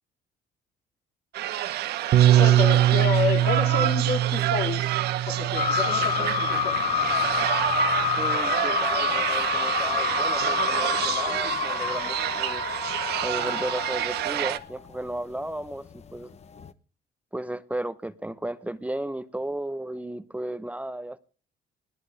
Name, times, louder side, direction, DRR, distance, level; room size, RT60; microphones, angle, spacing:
sound 1, 1.3-14.6, right 14 dB, 75° right, 1.0 m, -28 dB
Bass guitar, 2.1-6.6 7.4-8.4, right 13 dB, 50° right, 0.6 m, -23 dB
voice 1, 2.4-4.9 5.3-6.9, left 7 dB, 70° left, 3.1 m, -29 dB
sound 2, 5.6-15.1 15.4-16.2 16.4-16.7, left 8 dB, 40° left, 1.0 m, -28 dB
voice 2, 8.2-12.8 13.2-16.4 17.3-21.2, right 1 dB, 10° right, 0.7 m, -34 dB
21.0 x 13.5 x 3.4 m
cardioid pair, 110°, 17 cm